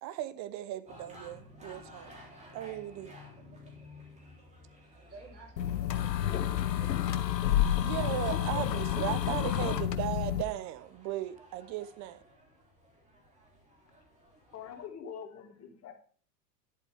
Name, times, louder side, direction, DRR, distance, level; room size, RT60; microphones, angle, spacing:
voice 1, 0.0-2.1 2.5-3.1 7.8-12.2, right 13 dB, 35° right, 0.9 m, -37 dB
sound 1, 0.9-14.9, left 1 dB, 15° right, 3.4 m, -55 dB
voice 2, 5.0-7.2, right 4 dB, 85° right, 5.7 m, -53 dB
sound 2, 5.6-10.4, left 11 dB, 85° left, 0.9 m, -29 dB
voice 3, 14.5-15.9, left 7 dB, 30° left, 2.4 m, -44 dB
11.0 x 8.0 x 3.5 m
hypercardioid pair, 100°, 49 cm